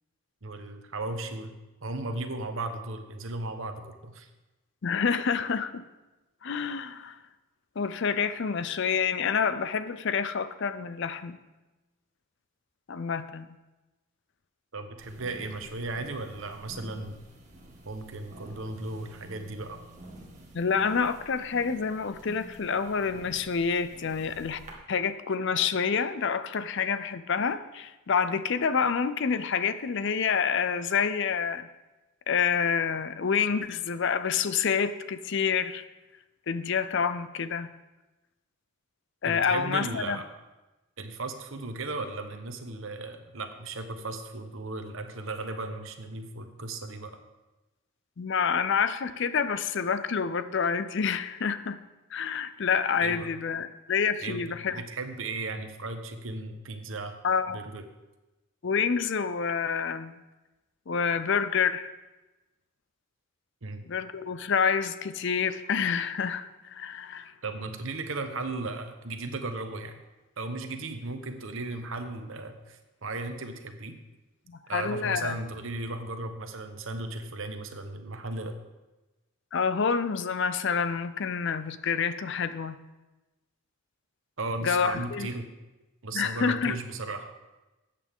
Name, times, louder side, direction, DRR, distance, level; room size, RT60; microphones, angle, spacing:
voice 1, 0.4-1.5 1.8-4.3 14.7-17.2 17.8-19.8 39.2-40.3 41.0-47.2 53.0-53.3 54.2-54.4 54.7-57.2 57.5-57.8 63.6-63.9 67.4-70.0 70.4-73.9 74.7-78.6 84.4-85.5 86.0-87.3, right 2 dB, 60° right, 7 dB, 1.0 m, -36 dB
voice 2, 4.8-5.8 6.4-7.2 7.8-11.4 12.9-13.5 20.5-24.6 24.9-31.7 32.3-35.8 36.5-37.7 39.2-40.2 48.2-51.8 52.1-54.8 57.2-57.6 58.6-60.2 60.9-61.9 63.8-67.3 74.5-75.4 79.5-82.8 84.6-85.3 86.1-86.8, left 6 dB, 55° left, 13 dB, 0.5 m, -28 dB
sound 1, 15.0-24.7, right 1 dB, 35° right, 1.6 m, -49 dB
13.0 x 8.5 x 3.6 m, 1.1 s
head